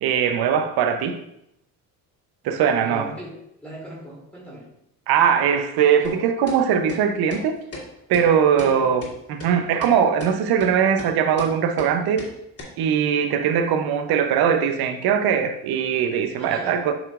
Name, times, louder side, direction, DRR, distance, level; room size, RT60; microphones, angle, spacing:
voice 1, 0.0-1.2 2.4-3.1 5.1-7.6 8.1-12.3 12.8-16.9, right 8 dB, 70° right, 0.8 m, -20 dB
voice 2, 2.8-3.3 3.6-4.7 8.6-8.9 16.4-16.8, right 1 dB, 5° left, 2.3 m, -37 dB
sound 1, 6.0-6.2 6.5-6.6 6.9-7.0 7.3-7.4 7.7-7.8 8.1-8.3 8.6-8.7 9.0-9.1 9.4-9.5 9.8-9.9 10.2-10.3 10.6-10.7 11.0-11.1 11.4-11.5 11.8-11.9 12.2-12.3 12.6-12.7, left 2 dB, 40° left, 2.5 m, -35 dB
8.4 x 4.8 x 2.4 m
supercardioid pair, 75°, 39 cm